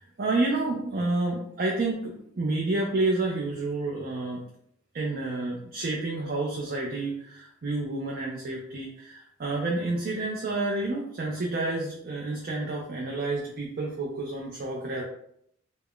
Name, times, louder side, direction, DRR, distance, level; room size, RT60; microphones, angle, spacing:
voice 1, 0.0-4.4 4.9-15.0, right 2 dB, 50° right, -2 dB, 0.4 m, -29 dB
2.3 x 2.1 x 3.5 m, 0.71 s
head